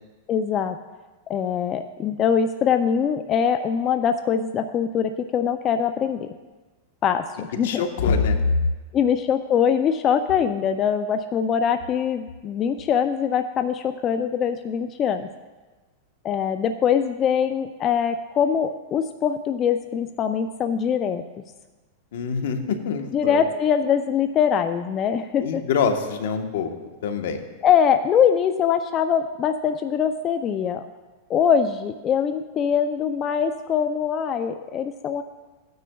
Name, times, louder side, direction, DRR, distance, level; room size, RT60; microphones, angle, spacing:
voice 1, 0.3-0.8 1.3-6.3 7.0-7.8 8.9-15.3 16.2-21.2 23.1-25.6 27.6-30.8 31.3-35.2, left 7 dB, 30° left, 7 dB, 0.4 m, -23 dB
voice 2, 7.6-8.4 22.1-23.4 25.4-26.7 27.0-27.4, left 5 dB, 75° left, 6 dB, 1.1 m, -24 dB
16.0 x 9.3 x 2.3 m, 1.2 s
hypercardioid pair, 125°, 0 cm